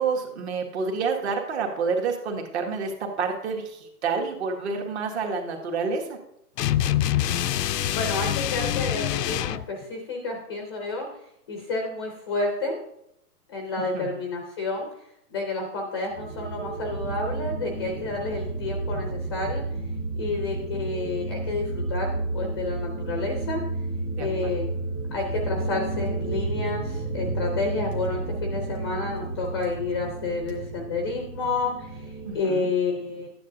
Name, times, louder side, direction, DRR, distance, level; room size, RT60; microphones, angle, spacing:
voice 1, 0.0-2.9 3.2-6.2 13.9-14.1 24.2-24.5 32.2-32.7, right 5 dB, 45° right, 2 dB, 1.9 m, -28 dB
sound 1, 6.6-9.7, left 12 dB, 85° left, 0.6 m, -25 dB
voice 2, 7.6-11.1 11.5-12.8 13.5-14.9 15.3-19.6 20.1-23.6 24.2-24.7 25.1-33.3, left 3 dB, 15° left, 2 dB, 0.6 m, -30 dB
sound 2, 16.1-32.3, right 2 dB, 20° right, 1.3 m, -31 dB
12.5 x 9.2 x 2.6 m, 0.78 s
hypercardioid pair, 165°, 47 cm